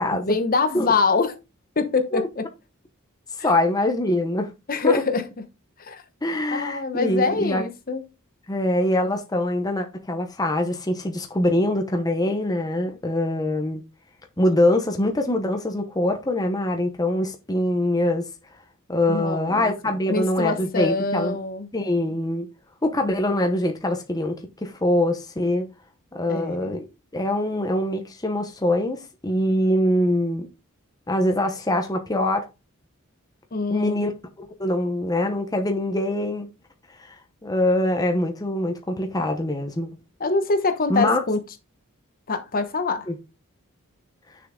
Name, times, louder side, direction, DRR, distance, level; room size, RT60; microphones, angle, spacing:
voice 1, 0.0-1.4 1.8-2.4 3.4-3.5 4.7-5.3 5.8-6.0 6.5-8.0 19.1-21.7 26.3-26.8 33.5-34.1 40.2-41.4 42.3-43.1, left 3 dB, 45° left, 1.0 m, -24 dB
voice 2, 3.3-4.5 4.8-5.0 6.2-7.6 8.5-13.8 14.4-18.2 18.9-21.4 21.7-22.5 22.8-24.3 24.6-25.7 26.1-26.9 27.1-30.5 31.1-32.5 33.7-34.1 34.4-36.5 37.0-37.1 37.4-39.9 40.9-41.2 43.1-43.2, left 1 dB, 20° left, 0.9 m, -23 dB
6.6 x 5.6 x 3.7 m
head